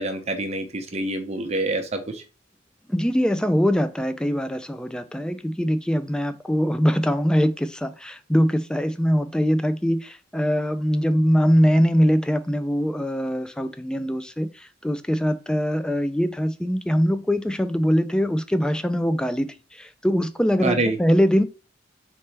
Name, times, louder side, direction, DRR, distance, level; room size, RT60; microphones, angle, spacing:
voice 1, 0.0-2.2 20.6-21.0, right 2 dB, 35° right, 0.8 m, -26 dB
voice 2, 2.9-21.4, equal, 5° left, 0.3 m, -22 dB
4.0 x 3.3 x 3.2 m
head